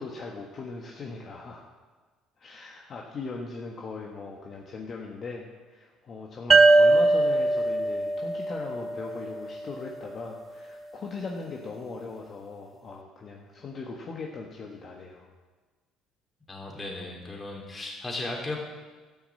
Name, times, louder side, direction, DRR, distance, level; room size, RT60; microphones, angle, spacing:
voice 1, 0.0-1.6 2.4-15.3, left 4 dB, 45° left, 0 dB, 1.4 m, -39 dB
sound 1, 6.5-10.0, right 3 dB, 30° right, 0.9 m, -22 dB
voice 2, 16.5-18.6, left 2 dB, 25° left, -1 dB, 3.4 m, -36 dB
13.0 x 6.3 x 7.6 m, 1.4 s
cardioid pair, 95°, 0 cm